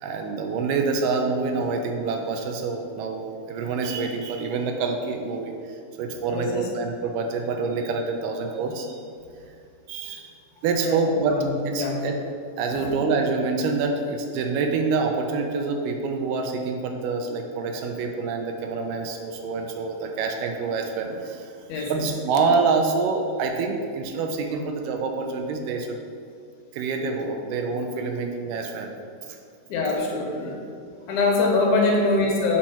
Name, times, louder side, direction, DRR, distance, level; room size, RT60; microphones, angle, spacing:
voice 1, 0.0-5.5 6.0-8.9 9.9-10.3 10.6-11.3 11.7-12.1 12.6-21.4 21.8-25.9 26.8-28.9, right 4 dB, 90° right, 3 dB, 2.3 m, -26 dB
voice 2, 6.3-6.7 10.8-11.4 11.7-12.0 12.7-12.9 21.7-22.1 29.7-30.6 31.1-32.6, left 3 dB, 70° left, -1 dB, 2.6 m, -24 dB
7.3 x 4.3 x 5.7 m, 2.4 s
omnidirectional pair, 3.7 m